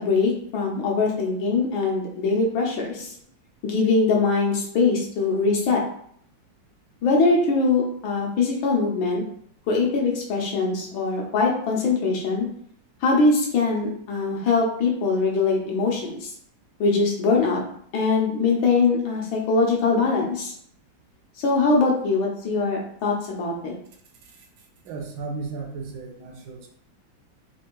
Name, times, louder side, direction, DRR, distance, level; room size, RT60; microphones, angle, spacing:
voice 1, 0.0-3.1 3.6-5.8 7.0-9.2 9.7-12.5 13.0-16.3 16.8-17.6 17.9-20.5 21.4-23.7, left 4 dB, 85° left, -1 dB, 1.7 m, -22 dB
voice 2, 24.8-26.7, right 4 dB, 80° right, 2 dB, 1.4 m, -35 dB
4.5 x 2.5 x 3.0 m, 0.64 s
omnidirectional pair, 2.1 m